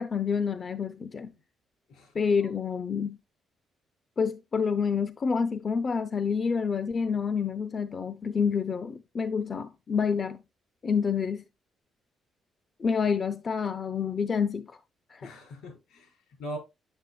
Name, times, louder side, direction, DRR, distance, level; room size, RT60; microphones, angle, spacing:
voice 1, 0.0-1.3 2.1-3.2 4.2-10.4 10.8-11.4 12.8-14.8 15.1-15.3, left 6 dB, 40° left, 0.4 m, -28 dB
voice 2, 1.9-2.6 15.2-16.6, equal, 85° left, 4.1 m, -42 dB
7.8 x 7.1 x 2.2 m
cardioid pair, 90°, 0 cm